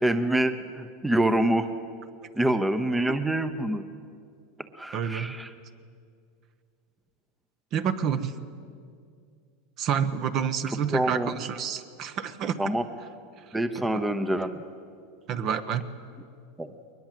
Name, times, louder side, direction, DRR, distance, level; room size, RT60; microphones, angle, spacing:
voice 1, 0.0-1.7 2.4-3.9 4.7-5.5 10.9-11.3 12.6-12.8 13.5-14.6 16.6-16.7, right 1 dB, 5° right, 10 dB, 0.8 m, -26 dB
voice 2, 4.9-5.4 7.7-8.4 9.8-12.6 13.7-14.0 15.3-15.8, right 7 dB, 40° right, 11 dB, 1.1 m, -28 dB
21.5 x 20.0 x 7.6 m, 2.3 s
supercardioid pair, 130°, 0 cm